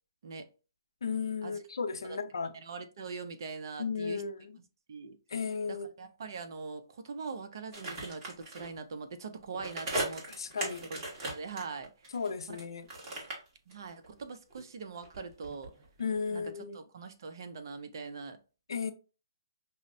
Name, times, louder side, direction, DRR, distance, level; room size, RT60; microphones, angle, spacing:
voice 1, 1.0-2.6 3.8-4.5 5.3-5.9 10.4-10.9 12.1-12.9 16.0-16.8 18.7-18.9, left 5 dB, 80° left, 0.5 m, -34 dB
voice 2, 2.5-4.2 4.9-5.2 5.7-10.3 10.9-11.0 11.3-11.9 13.7-15.7 16.3-16.4 16.7-18.4, right 4 dB, 55° right, 0.6 m, -42 dB
sound 1, 7.7-8.7 9.5-12.6 12.9-14.2 14.5-16.1 16.4-16.5, right 1 dB, 30° right, 1.4 m, -38 dB
5.3 x 2.1 x 2.5 m
hypercardioid pair, 155°, 2 cm